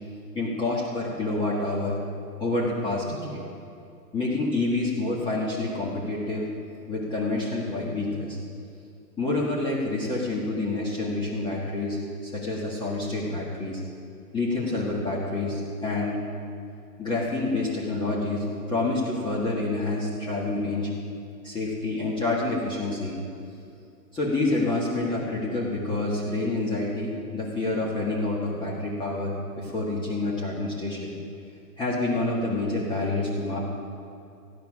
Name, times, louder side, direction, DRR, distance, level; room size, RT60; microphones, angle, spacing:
voice 1, 0.3-2.0 2.4-3.4 4.1-6.5 6.9-8.4 9.2-13.8 14.3-16.2 17.0-20.9 21.4-23.2 24.1-31.2 31.8-33.6, left 2 dB, 10° left, -6 dB, 1.7 m, -28 dB
16.0 x 10.5 x 6.2 m, 2.5 s
hypercardioid pair, 150°, 48 cm